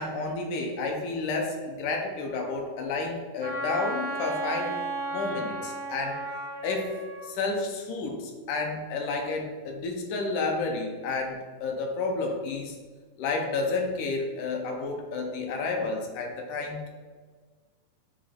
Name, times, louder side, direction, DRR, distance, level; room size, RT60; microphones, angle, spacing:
voice 1, 0.0-4.8 5.1-6.3 6.6-7.0 7.2-12.8 13.2-16.9, left 3 dB, 80° left, 2 dB, 2.1 m, -31 dB
Wind instrument woodwind instrument, 3.4-7.3, right 2 dB, 90° right, 0.8 m, -34 dB
7.4 x 3.1 x 4.3 m, 1.5 s
omnidirectional pair, 3.7 m